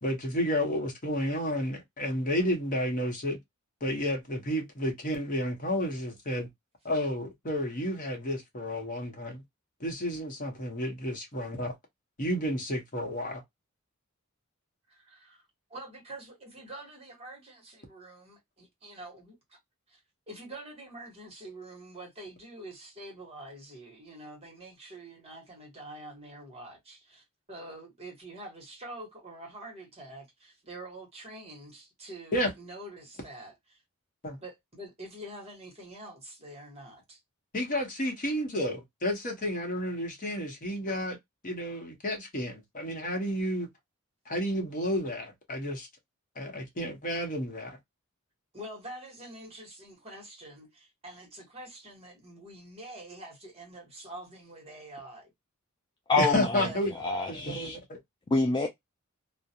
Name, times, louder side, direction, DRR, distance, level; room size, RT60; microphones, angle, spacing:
voice 1, 0.0-3.4 3.8-6.5 6.8-9.4 9.8-11.7 12.2-13.4 32.3-32.5 34.2-34.4 37.5-41.2 41.4-43.7 44.3-45.9 46.4-47.8 56.2-56.9 57.3-58.0, equal, 40° left, 0.8 m, -31 dB
voice 2, 14.9-15.4 15.7-19.6 19.9-20.0 20.3-33.8 34.4-37.2 48.5-55.3 56.6-56.8, right 1 dB, 30° right, 1.1 m, -46 dB
voice 3, 56.1-56.7 57.0-57.8 58.3-58.7, left 3 dB, 20° left, 0.3 m, -27 dB
2.4 x 2.1 x 2.7 m
head